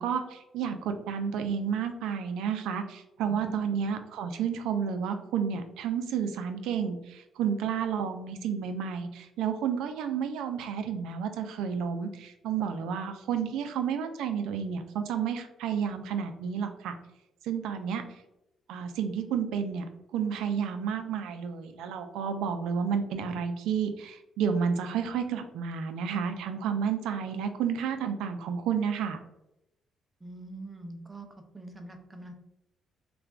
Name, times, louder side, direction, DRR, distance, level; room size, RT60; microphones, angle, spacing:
voice 1, 0.0-17.0 17.4-18.0 18.7-19.8 20.1-29.2, right 7 dB, 90° right, 7 dB, 0.3 m, -31 dB
voice 2, 30.2-31.3 31.5-32.3, right 2 dB, 20° right, 4 dB, 0.5 m, -43 dB
3.2 x 2.2 x 2.3 m, 0.89 s
cardioid pair, 90°, 0 cm